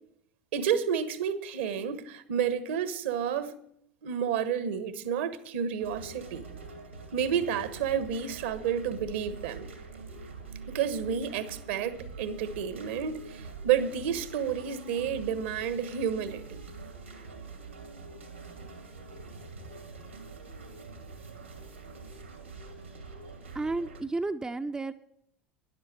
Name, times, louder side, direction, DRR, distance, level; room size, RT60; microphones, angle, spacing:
voice 1, 0.5-3.5 4.0-6.4 7.1-9.7 10.7-16.6, right 8 dB, 60° right, 1.2 m, -30 dB
sound 1, 5.8-24.0, right 4 dB, 85° right, 2.3 m, -45 dB
voice 2, 23.5-24.9, right 3 dB, 10° right, 0.6 m, -32 dB
12.5 x 11.0 x 4.7 m
figure-of-eight pair, 75°, 6 cm